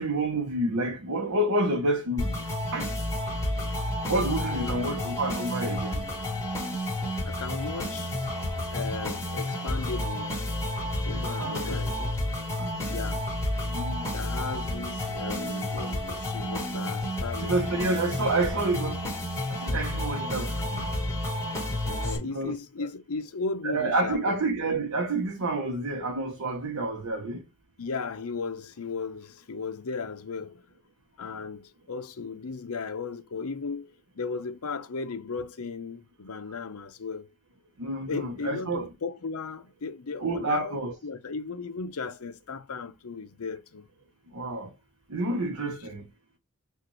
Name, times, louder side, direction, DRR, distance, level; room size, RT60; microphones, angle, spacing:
voice 1, 0.0-2.3 2.7-2.9 4.1-6.0 11.1-11.8 12.6-12.7 13.7-14.0 17.4-19.0 19.7-20.8 22.3-22.6 23.6-27.4 37.8-38.9 40.2-40.9 44.3-44.7 45.1-46.0, right 2 dB, 75° right, 0.9 m, -28 dB
sound 1, 2.2-22.2, left 1 dB, 15° left, 1.8 m, -31 dB
voice 2, 4.4-4.9 7.2-8.2 8.7-10.4 11.0-12.2 12.9-13.2 14.1-17.6 20.6-20.7 21.8-24.4 27.8-30.6 31.2-37.3 38.1-43.9 45.6-45.8, left 4 dB, 75° left, 0.7 m, -36 dB
6.4 x 2.5 x 3.1 m
head